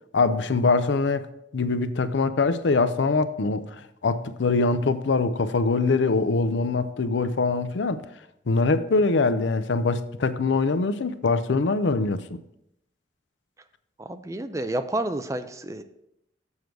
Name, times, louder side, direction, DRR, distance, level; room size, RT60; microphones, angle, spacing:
voice 1, 0.1-1.3 1.5-3.6 4.0-8.0 8.5-12.4, left 3 dB, 90° left, 0.5 m, -23 dB
voice 2, 14.0-15.8, right 1 dB, 15° right, 0.4 m, -30 dB
7.2 x 6.3 x 4.6 m
head